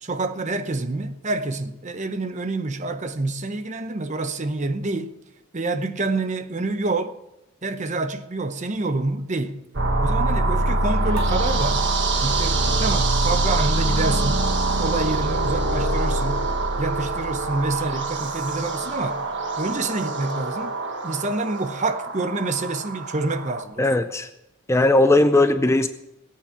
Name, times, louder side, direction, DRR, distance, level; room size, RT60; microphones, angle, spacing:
voice 1, 0.0-5.2 5.5-7.2 7.6-9.6 10.0-11.8 12.1-14.4 14.8-16.4 16.8-19.3 19.6-20.8 21.0-23.9, right 2 dB, 35° right, 0.8 m, -27 dB
sound 1, 9.7-23.6, right 2 dB, 55° right, 1.4 m, -24 dB
sound 2, 11.1-17.9, right 1 dB, 75° right, 2.5 m, -44 dB
voice 2, 23.8-24.3 24.7-25.9, left 2 dB, 15° left, 0.4 m, -18 dB
18.0 x 8.7 x 5.9 m
head